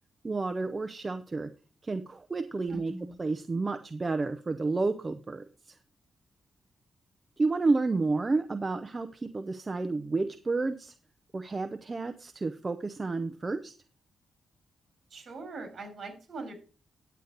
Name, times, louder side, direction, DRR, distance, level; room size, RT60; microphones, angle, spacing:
voice 1, 0.2-1.5 1.8-2.9 3.2-5.7 7.4-10.9 11.3-13.7, right 3 dB, 25° right, 8 dB, 0.6 m, -30 dB
voice 2, 2.7-3.2 15.1-16.5, right 3 dB, 45° right, 5 dB, 3.8 m, -41 dB
10.0 x 8.0 x 3.9 m, 0.35 s
cardioid pair, 125°, 0 cm